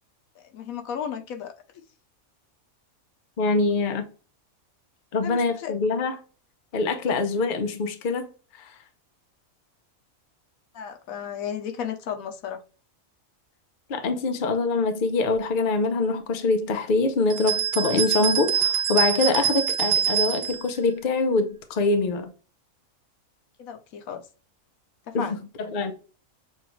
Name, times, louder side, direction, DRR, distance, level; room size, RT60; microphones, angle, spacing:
voice 1, 0.4-1.5 5.2-5.8 7.1-7.2 10.7-12.6 23.6-24.2 25.1-25.4, left 8 dB, 85° left, 1.2 m, -34 dB
voice 2, 3.4-4.1 5.1-6.2 6.7-8.8 13.9-22.3 25.1-25.9, left 3 dB, 50° left, 0.7 m, -24 dB
sound 1, 17.3-20.6, right 9 dB, 80° right, 1.1 m, -25 dB
6.9 x 2.4 x 3.0 m
omnidirectional pair, 1.4 m